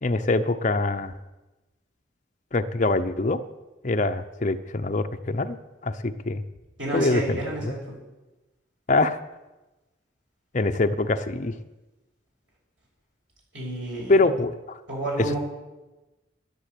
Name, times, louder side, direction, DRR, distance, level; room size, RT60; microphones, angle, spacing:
voice 1, 0.0-1.1 2.5-3.4 3.8-5.6 5.8-6.4 6.9-7.7 8.9-9.2 10.5-11.5 14.1-14.8, left 2 dB, 40° left, 7 dB, 0.8 m, -24 dB
voice 2, 6.8-8.0 13.5-14.3 14.9-15.4, right 1 dB, 85° right, -2 dB, 6.7 m, -30 dB
11.0 x 11.0 x 8.4 m, 1.1 s
head